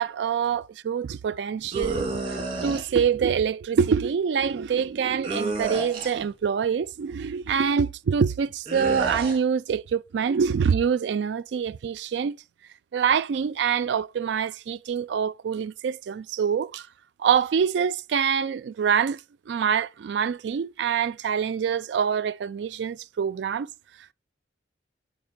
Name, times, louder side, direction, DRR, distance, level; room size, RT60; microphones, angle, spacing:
voice 1, 0.0-12.4 12.9-16.9 17.2-19.2 19.5-23.7, right 7 dB, 70° right, 0.3 m, -25 dB
sound 1, 1.7-2.8 5.2-6.3 8.7-9.4, right 3 dB, 30° right, 1.8 m, -30 dB
5.1 x 4.7 x 5.0 m
head